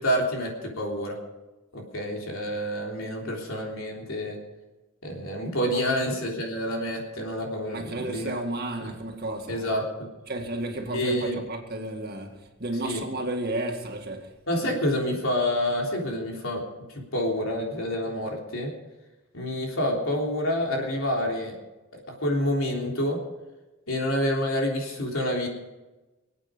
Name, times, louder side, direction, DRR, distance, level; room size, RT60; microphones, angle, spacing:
voice 1, 0.0-1.2 1.7-4.4 5.0-8.3 8.8-8.9 9.5-9.9 10.9-11.4 12.8-13.0 14.5-16.6 16.9-18.7 19.3-21.6 22.2-23.2 23.9-25.5, equal, 75° left, 3.5 m, -28 dB
voice 2, 7.7-9.7 10.3-14.8, right 1 dB, 45° right, 2.0 m, -33 dB
26.0 x 8.9 x 5.2 m
head